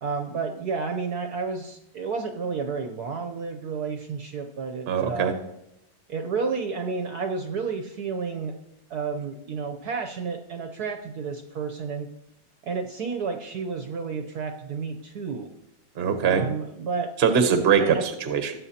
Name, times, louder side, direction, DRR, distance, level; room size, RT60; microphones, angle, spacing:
voice 1, 0.0-5.3 6.1-8.5 8.9-12.1 12.6-15.5 16.2-17.1 17.8-18.0, right 5 dB, 60° right, 4 dB, 1.1 m, -31 dB
voice 2, 4.9-5.3 16.0-16.4 17.2-18.5, right 7 dB, 40° right, 6 dB, 1.0 m, -22 dB
17.0 x 7.6 x 2.8 m, 0.84 s
omnidirectional pair, 2.2 m